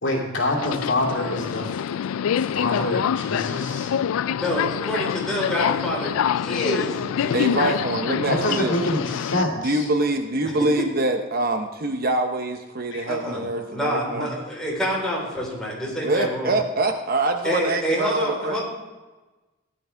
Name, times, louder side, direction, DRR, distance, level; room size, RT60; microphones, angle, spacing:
voice 1, 0.0-1.8 2.4-3.9 8.3-9.9 12.9-13.1, left 1 dB, 60° left, -2 dB, 2.5 m, -26 dB
Subway metro underground, 0.5-9.4, left 8 dB, 80° left, 0.3 m, -26 dB
voice 2, 4.3-7.4 13.1-13.4 13.7-16.6 17.4-18.6, equal, 5° left, -5 dB, 4.0 m, -27 dB
voice 3, 7.3-8.7 9.6-14.3 16.0-18.6, right 2 dB, 45° right, 6 dB, 0.8 m, -24 dB
15.5 x 10.5 x 3.4 m, 1.2 s
head